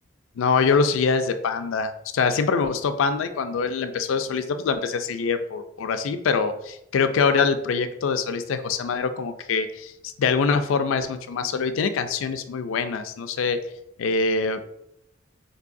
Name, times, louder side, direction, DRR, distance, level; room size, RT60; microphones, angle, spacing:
voice 1, 0.4-13.6 14.0-14.6, left 5 dB, 75° left, 9 dB, 0.4 m, -24 dB
4.6 x 2.7 x 2.6 m, 0.81 s
head